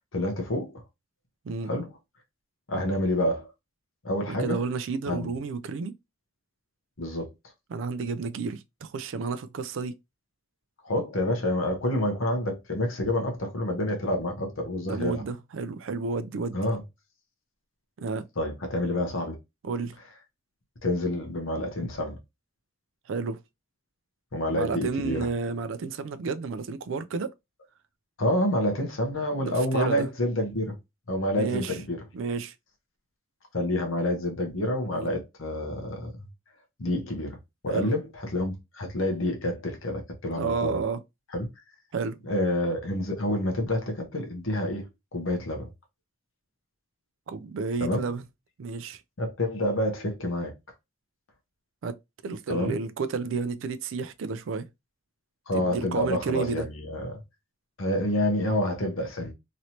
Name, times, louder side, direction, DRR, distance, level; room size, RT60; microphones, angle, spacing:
voice 1, 0.1-0.8 1.7-1.9 2.7-3.5 4.0-4.6 5.1-5.3 7.0-7.3 10.8-15.2 16.5-16.8 18.4-19.4 20.8-22.2 24.3-25.3 28.2-30.8 31.1-32.0 33.5-36.3 36.8-37.4 37.6-40.8 41.3-41.5 42.3-45.7 47.8-48.0 49.2-50.5 52.5-52.7 55.5-57.2 57.8-59.3, left 1 dB, 75° left, 0.9 m, -28 dB
voice 2, 4.3-6.0 7.7-9.9 14.8-16.6 18.0-18.3 19.6-19.9 23.1-23.4 24.5-27.3 29.3-30.1 31.3-31.8 32.1-32.5 34.9-35.1 37.7-37.9 40.4-41.0 41.9-42.2 47.3-48.2 48.6-49.0 51.8-52.0 52.2-54.7 55.5-56.7, right 4 dB, 65° right, 0.4 m, -31 dB
3.1 x 2.7 x 2.8 m
head